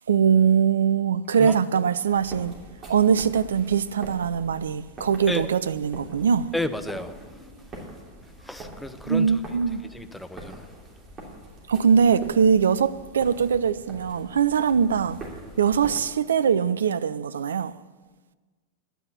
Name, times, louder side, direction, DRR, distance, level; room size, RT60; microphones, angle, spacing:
voice 1, 0.1-2.5 2.9-6.5 9.0-9.8 11.7-15.2 15.6-17.7, right 7 dB, 65° right, 0.4 m, -22 dB
sound 1, 2.1-16.0, right 1 dB, 20° right, 2.9 m, -44 dB
voice 2, 6.5-7.2 8.4-9.3 9.8-10.7, left 1 dB, 5° left, 0.7 m, -31 dB
11.5 x 9.2 x 7.1 m
figure-of-eight pair, 90°, 0 cm